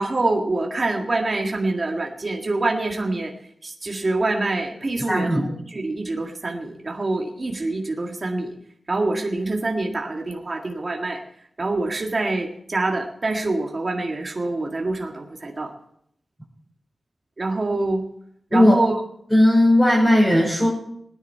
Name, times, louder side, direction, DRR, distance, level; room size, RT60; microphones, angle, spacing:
voice 1, 0.0-3.3 3.6-8.5 8.9-11.2 11.6-15.7 17.4-18.1 18.5-19.0, right 2 dB, 40° right, 1 dB, 1.9 m, -25 dB
voice 2, 5.1-5.4 18.5-18.8 19.3-20.7, left 1 dB, 5° left, -6 dB, 5.1 m, -16 dB
19.5 x 10.5 x 4.6 m, 0.70 s
wide cardioid pair, 105°, 0 cm